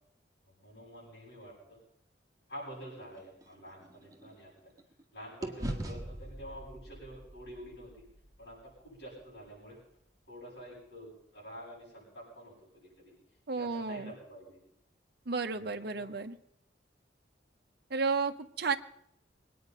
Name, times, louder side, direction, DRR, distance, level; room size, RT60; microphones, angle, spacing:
voice 1, 0.4-1.8 2.5-4.7 5.1-8.0 8.4-9.8 10.3-13.1 13.6-14.6 15.6-15.7 16.0-16.1, equal, 70° left, -6 dB, 7.8 m, -48 dB
sound 1, 2.7-5.0 5.4-9.6, right 1 dB, 20° right, 1.8 m, -43 dB
voice 2, 13.5-14.1 15.3-16.4 17.9-18.8, right 4 dB, 65° right, 7 dB, 0.9 m, -32 dB
22.0 x 9.5 x 5.6 m, 0.75 s
head